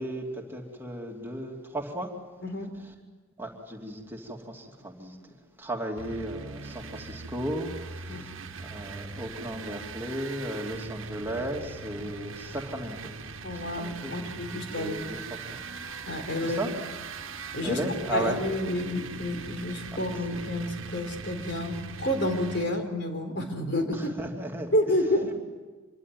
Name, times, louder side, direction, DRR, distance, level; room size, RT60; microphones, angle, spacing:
voice 1, 0.0-2.1 3.4-14.3 14.7-15.6 16.4-16.7 17.6-18.4 19.9-20.0 20.3-20.4 23.9-24.7, right 1 dB, 10° right, 0 dB, 2.9 m, -35 dB
sound 1, 6.0-22.6, right 4 dB, 75° right, 1.6 m, -40 dB
voice 2, 13.4-15.2 16.1-16.6 17.5-17.8 18.1-24.1 24.7-25.4, left 1 dB, 55° left, 5 dB, 4.2 m, -29 dB
26.0 x 23.0 x 9.3 m, 1.3 s
head